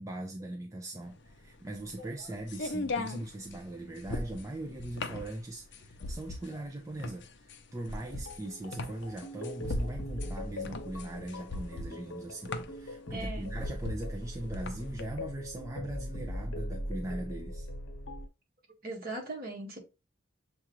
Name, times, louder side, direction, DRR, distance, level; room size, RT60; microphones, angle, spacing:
voice 1, 0.0-17.7, right 1 dB, 15° right, 0.5 m, -40 dB
sound 1, 1.1-15.0, left 2 dB, 60° left, 0.6 m, -39 dB
voice 2, 2.0-2.3 6.5-6.6 13.1-13.5 18.8-19.8, right 2 dB, 50° right, 1.6 m, -40 dB
sound 2, 8.1-18.3, left 1 dB, 85° left, 1.0 m, -40 dB
7.0 x 2.4 x 3.1 m
head